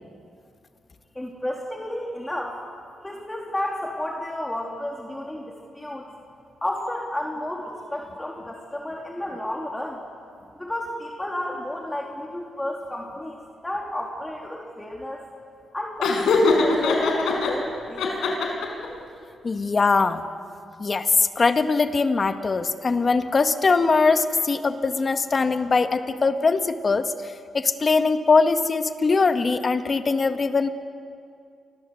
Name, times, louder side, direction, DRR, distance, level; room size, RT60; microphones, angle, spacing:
voice 1, 1.1-2.6 3.0-6.1 6.6-10.0 10.6-15.2 15.7-18.4, left 1 dB, 10° left, -1 dB, 3.3 m, -32 dB
Laughter, 16.0-17.5 18.0-18.9, left 3 dB, 85° left, 5.4 m, -21 dB
voice 2, 19.4-20.2 20.8-27.1 27.5-30.7, left 4 dB, 35° left, 8 dB, 1.8 m, -21 dB
29.5 x 24.0 x 8.0 m, 2.3 s
cardioid pair, 90°, 0 cm